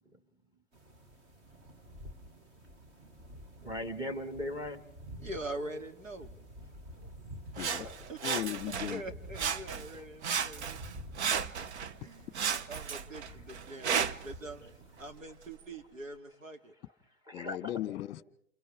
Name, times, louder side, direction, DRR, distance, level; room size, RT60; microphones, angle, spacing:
sound 1, 0.7-15.1, equal, 30° right, 2.1 m, -50 dB
voice 1, 3.6-4.8 7.6-8.1 13.1-13.3 17.3-17.7, left 1 dB, 10° right, 2.0 m, -39 dB
voice 2, 5.2-6.3 7.6-7.7 8.1-8.2 8.9-10.9 12.0-12.3 12.7-14.7 15.0-16.7, right 1 dB, 90° right, 2.9 m, -43 dB
voice 3, 7.6-7.9 8.2-9.0 17.3-18.2, left 14 dB, 30° left, 1.3 m, -37 dB
Sawing, 7.6-9.0 9.3-10.0 10.2-11.9 12.3-14.3 15.0-15.1, right 7 dB, 60° right, 1.1 m, -34 dB
29.0 x 28.5 x 3.6 m
hypercardioid pair, 125°, 38 cm